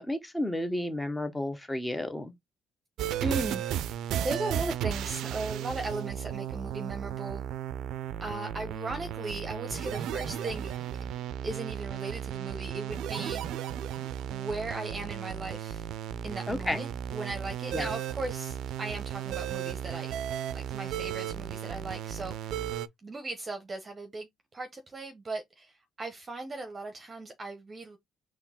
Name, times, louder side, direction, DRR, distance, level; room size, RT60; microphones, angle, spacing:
voice 1, 0.0-2.3 16.5-16.8 17.7-17.9, left 1 dB, 10° left, 1.0 m, -32 dB
sound 1, 3.0-22.9, right 10 dB, 70° right, 0.5 m, -35 dB
voice 2, 3.2-3.8 4.2-7.5 8.2-10.7 11.4-13.7 14.3-15.9 16.2-20.2 20.5-22.7 23.0-28.0, right 2 dB, 25° right, 0.9 m, -37 dB
4.5 x 3.1 x 3.6 m
cardioid pair, 135°, 0 cm